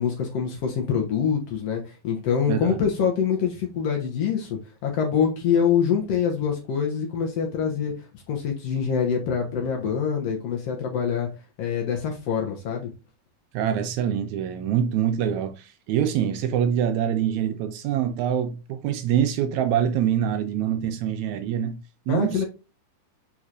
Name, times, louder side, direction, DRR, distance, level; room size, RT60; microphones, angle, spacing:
voice 1, 0.0-7.9 8.3-11.3 11.6-12.9 22.1-22.5, left 7 dB, 65° left, 1.8 m, -25 dB
voice 2, 2.5-2.8 13.5-21.8 22.1-22.5, right 9 dB, 80° right, 1.8 m, -25 dB
4.8 x 4.3 x 2.4 m
omnidirectional pair, 3.6 m